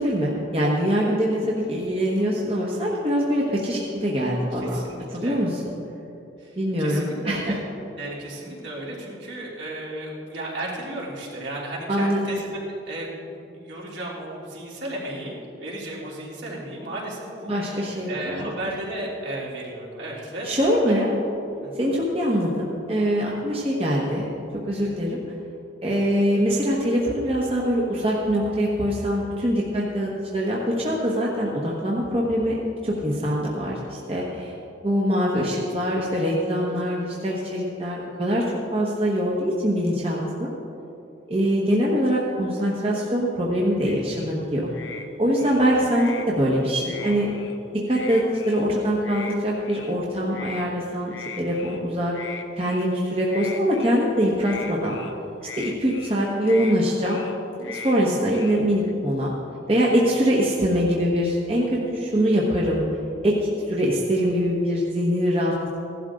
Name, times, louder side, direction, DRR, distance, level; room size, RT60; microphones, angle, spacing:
voice 1, 0.0-4.8 5.1-5.7 6.6-7.6 11.9-12.2 17.5-18.5 20.4-21.1 21.7-24.3 24.7-25.2 25.8-32.6 32.8-34.5 34.8-40.5 41.3-44.7 45.2-47.3 47.9-52.1 52.6-55.0 55.6-57.2 57.6-59.3 59.7-62.8 63.2-65.8, equal, 30° right, -4 dB, 1.3 m, -23 dB
voice 2, 4.5-5.4 6.4-7.6 8.0-20.5 20.9-21.0 21.6-22.0 35.3-35.6 47.0-47.3, right 1 dB, 70° right, -5 dB, 3.2 m, -35 dB
sound 1, 43.8-44.3 44.7-45.1 45.3-46.3 46.8-47.6 47.9-48.6 49.0-49.4 49.6-49.9 50.3-50.6 51.1-51.8 52.1-53.0 53.3-54.0 54.4-55.1 55.4-56.2 56.4-56.8 57.0-57.3 57.6-58.0 58.3-58.9, left 6 dB, 85° left, 0.9 m, -39 dB
16.5 x 11.5 x 3.8 m, 2.8 s
head